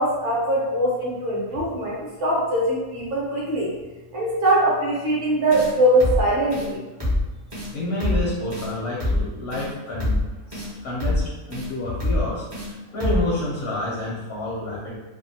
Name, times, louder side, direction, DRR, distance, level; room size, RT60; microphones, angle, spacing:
voice 1, 0.0-3.7 4.1-6.8, right 1 dB, 45° right, -5 dB, 0.9 m, -22 dB
sound 1, 5.5-5.7 6.0-6.2 6.5-6.7 7.0-7.2 7.5-7.7 8.0-8.2 8.5-8.7 9.0-9.2 9.5-9.7 10.0-10.2 10.5-10.7 11.0-11.2 11.5-11.7 12.0-12.2 12.5-12.7 13.0-13.2, left 1 dB, 30° right, 0.5 m, -24 dB
voice 2, 7.7-10.2 10.5-15.0, left 1 dB, 65° left, -5 dB, 0.7 m, -29 dB
2.6 x 2.3 x 2.7 m, 1.1 s
omnidirectional pair, 1.6 m